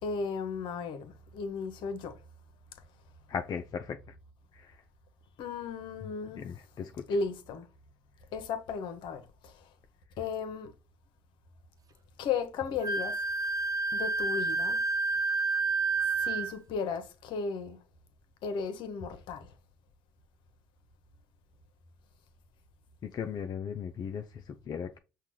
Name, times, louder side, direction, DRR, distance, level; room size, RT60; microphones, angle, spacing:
voice 1, 0.0-2.2 5.4-6.5 7.1-7.7 8.3-9.7 10.2-10.7 12.2-13.2 13.9-14.8 16.2-17.8 18.4-19.5, left 5 dB, 70° left, 0.8 m, -35 dB
voice 2, 3.3-4.0 4.5-4.8 6.4-7.0 23.0-25.0, left 7 dB, 50° left, 0.5 m, -37 dB
Wind instrument woodwind instrument, 12.8-16.5, right 3 dB, 45° right, 0.6 m, -29 dB
5.7 x 2.2 x 3.1 m
supercardioid pair, 60°, 8 cm